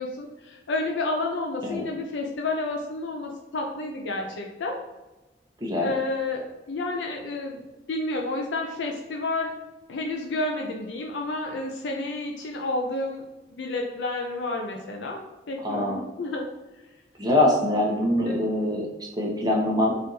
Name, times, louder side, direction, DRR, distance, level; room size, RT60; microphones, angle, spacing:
voice 1, 0.0-4.8 5.8-9.5 9.9-13.2 13.5-16.5 18.3-18.4, left 2 dB, 80° left, 1 dB, 0.5 m, -30 dB
voice 2, 5.6-5.9 15.6-16.0 17.2-19.9, left 1 dB, 20° right, -1 dB, 0.7 m, -24 dB
4.1 x 2.5 x 3.9 m, 1.1 s
head